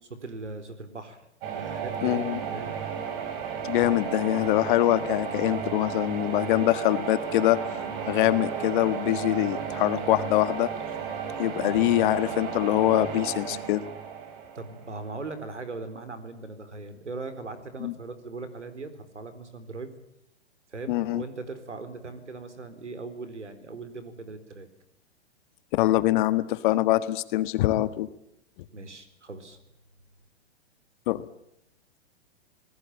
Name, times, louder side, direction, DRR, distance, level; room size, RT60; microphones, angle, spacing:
voice 1, 0.1-1.3 1.5-2.2 2.5-2.7 14.6-19.9 20.7-24.7 28.7-29.6, right 3 dB, 85° right, 11 dB, 4.1 m, -39 dB
sound 1, 1.4-15.3, right 7 dB, 40° right, 5.9 m, -33 dB
voice 2, 2.0-2.4 3.6-7.6 8.1-10.7 11.4-13.9 17.8-17.9 20.9-21.2 25.7-28.1 31.1-31.2, left 16 dB, 45° left, 14 dB, 1.6 m, -24 dB
27.0 x 19.5 x 8.9 m, 0.79 s
hypercardioid pair, 115°, 35 cm